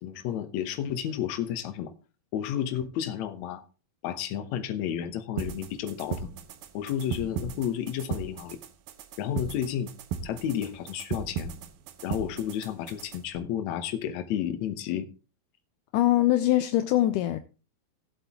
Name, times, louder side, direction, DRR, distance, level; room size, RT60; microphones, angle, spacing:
voice 1, 0.0-1.9 2.3-3.6 4.0-6.3 6.7-8.6 9.2-9.9 10.2-11.5 12.0-15.1, left 10 dB, 65° left, 1.9 m, -31 dB
sound 1, 5.4-13.4, right 7 dB, 80° right, 2.6 m, -37 dB
voice 2, 15.9-17.4, left 14 dB, 80° left, 1.9 m, -22 dB
18.0 x 7.9 x 2.9 m
omnidirectional pair, 4.2 m